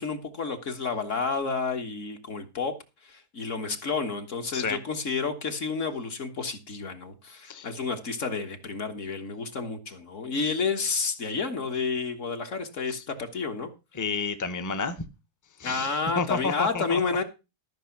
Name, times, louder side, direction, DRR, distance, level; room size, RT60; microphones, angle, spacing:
voice 1, 0.0-2.8 3.0-13.7 15.6-17.2, left 4 dB, 50° left, 1.6 m, -30 dB
voice 2, 13.9-15.0 15.6-17.0, left 4 dB, 15° left, 0.7 m, -30 dB
13.0 x 6.0 x 5.8 m
omnidirectional pair, 1.7 m